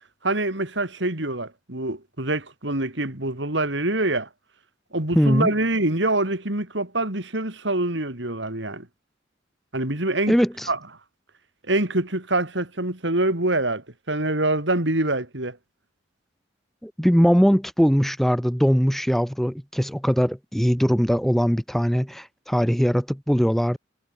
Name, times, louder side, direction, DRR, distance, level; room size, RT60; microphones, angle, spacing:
voice 1, 0.2-4.3 4.9-8.9 9.7-10.4 10.7-10.8 11.7-15.6, right 2 dB, 65° right, 3.9 m, -25 dB
voice 2, 5.1-5.5 10.3-10.7 16.8-23.8, equal, ahead, 1.4 m, -21 dB
head